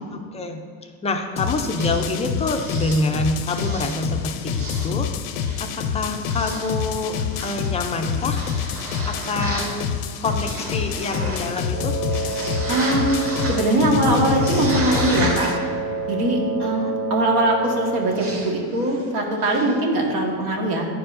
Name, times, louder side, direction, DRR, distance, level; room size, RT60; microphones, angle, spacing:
voice 1, 0.0-5.1 5.6-7.1 7.4-8.4 9.1-9.9 10.2-11.9 16.6-16.9, left 2 dB, 15° left, 5 dB, 0.3 m, -26 dB
sound 1, 1.4-15.6, left 7 dB, 80° left, 0.6 m, -27 dB
sound 2, 1.8-4.1 4.4-5.1 5.4-9.7 10.2-11.8 12.1-13.7 14.3-15.6 18.1-18.5 18.8-19.0 19.3-19.8, right 2 dB, 30° right, 1.5 m, -33 dB
Wind instrument woodwind instrument, 11.7-18.5, right 3 dB, 60° right, 0.8 m, -29 dB
voice 2, 12.7-15.5 16.1-20.9, right 1 dB, 75° right, 0 dB, 1.5 m, -21 dB
10.5 x 4.6 x 2.5 m, 2.3 s
supercardioid pair, 110°, 45 cm